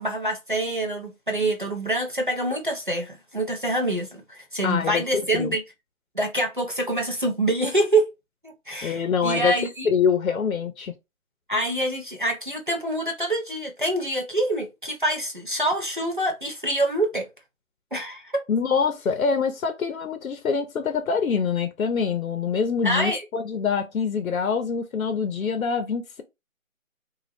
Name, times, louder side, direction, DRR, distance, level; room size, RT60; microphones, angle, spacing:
voice 1, 0.0-5.6 6.2-8.0 8.4-9.9 11.5-17.3 17.9-18.3 22.8-23.2, right 1 dB, 40° right, 0.5 m, -26 dB
voice 2, 4.6-5.6 8.8-9.6 9.8-10.9 18.5-26.2, left 6 dB, 80° left, 0.6 m, -25 dB
2.3 x 2.0 x 3.2 m
figure-of-eight pair, 175°, 41 cm